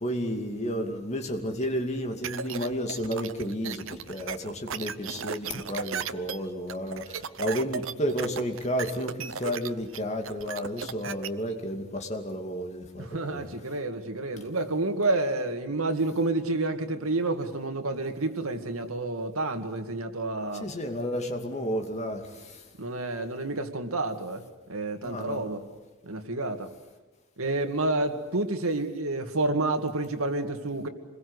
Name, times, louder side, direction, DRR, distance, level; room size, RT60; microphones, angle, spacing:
voice 1, 0.0-3.8 4.1-7.0 7.4-13.4 20.6-22.2 25.0-25.5, equal, 30° left, 4 dB, 2.5 m, -31 dB
sound 1, 2.2-11.3, right 6 dB, 70° right, 0.9 m, -35 dB
voice 2, 13.0-20.7 22.8-24.4 24.7-25.6 26.0-26.7 27.4-30.9, right 2 dB, 85° right, 6 dB, 2.2 m, -29 dB
27.0 x 21.5 x 8.1 m, 1.2 s
head